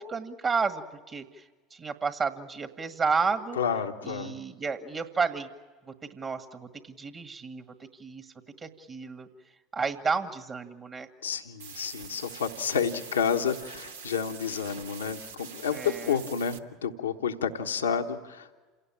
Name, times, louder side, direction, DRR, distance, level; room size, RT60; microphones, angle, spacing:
voice 1, 0.0-1.4 1.7-3.6 4.0-5.5 6.1-8.3 8.6-9.3 9.7-11.1 15.7-16.2, right 5 dB, 35° right, 8 dB, 1.8 m, -31 dB
voice 2, 3.6-4.3 11.2-18.5, left 7 dB, 90° left, 4 dB, 1.2 m, -30 dB
sound 1, 11.6-16.6, right 6 dB, 85° right, 1.1 m, -44 dB
28.0 x 17.5 x 8.8 m, 1.3 s
hypercardioid pair, 80°, 0 cm